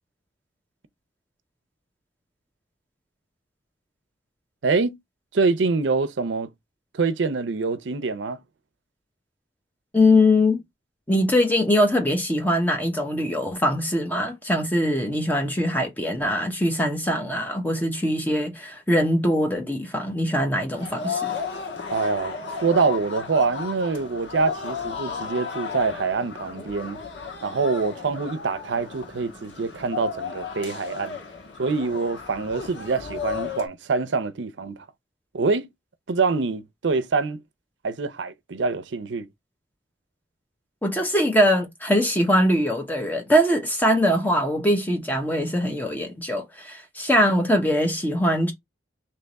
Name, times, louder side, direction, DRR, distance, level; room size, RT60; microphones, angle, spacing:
voice 1, 4.6-5.0 5.3-6.5 6.9-8.4 21.9-27.0 27.4-31.2 31.6-34.9 35.3-35.7 36.1-37.4 37.8-39.3, right 4 dB, 80° right, 0.5 m, -25 dB
voice 2, 9.9-10.6 11.1-21.3 40.8-48.5, left 1 dB, 10° left, 0.7 m, -22 dB
sound 1, 20.7-33.7, left 5 dB, 85° left, 1.2 m, -34 dB
3.4 x 3.0 x 3.9 m
head